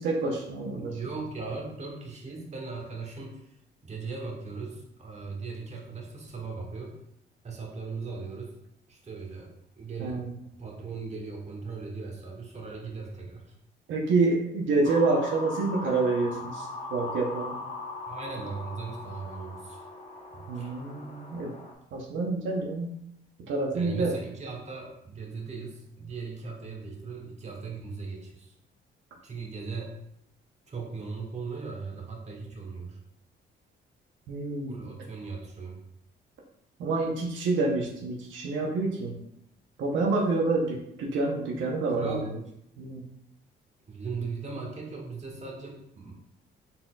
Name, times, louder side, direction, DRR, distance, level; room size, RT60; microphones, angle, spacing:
voice 1, 0.0-1.0 10.0-10.3 13.9-17.6 20.5-21.5 21.9-22.9 23.5-24.1 34.3-34.7 36.8-39.2 39.8-42.2 42.8-43.0, right 3 dB, 80° right, -1 dB, 0.8 m, -28 dB
voice 2, 0.9-3.6 3.8-7.0 7.4-8.5 8.9-9.5 9.8-10.2 10.6-13.4 18.1-19.8 20.3-20.7 23.7-28.5 29.2-29.9 30.7-33.0 34.7-35.8 42.0-42.3 43.9-46.1, right 4 dB, 35° right, 0 dB, 1.1 m, -38 dB
sound 1, 14.8-21.7, left 2 dB, 30° left, 0.7 m, -40 dB
4.2 x 3.7 x 2.3 m, 0.75 s
cardioid pair, 90°, 20 cm